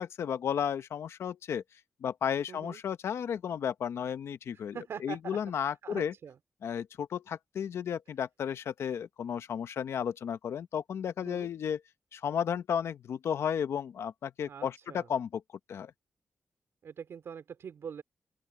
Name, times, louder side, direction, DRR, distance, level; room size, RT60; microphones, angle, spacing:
voice 1, 0.0-1.6 2.0-6.1 6.6-11.8 12.1-15.4 15.7-15.9, left 8 dB, 85° left, 1.0 m, -33 dB
voice 2, 2.5-2.8 4.5-5.4 5.8-6.4 11.2-11.5 14.5-15.1 16.8-18.0, right 7 dB, 80° right, 3.5 m, -43 dB
open air
cardioid pair, 75°, 4 cm